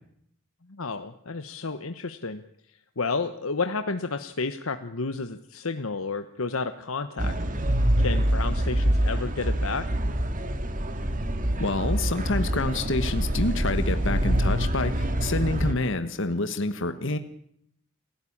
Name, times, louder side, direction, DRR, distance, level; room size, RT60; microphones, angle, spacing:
voice 1, 0.7-2.4 3.0-7.3 8.0-9.9, left 4 dB, 85° left, 8 dB, 1.2 m, -31 dB
sound 1, 7.2-15.7, right 1 dB, 40° right, 2.3 m, -25 dB
voice 2, 11.6-17.2, left 2 dB, 65° left, 9 dB, 1.5 m, -28 dB
29.0 x 16.0 x 8.8 m, 0.73 s
head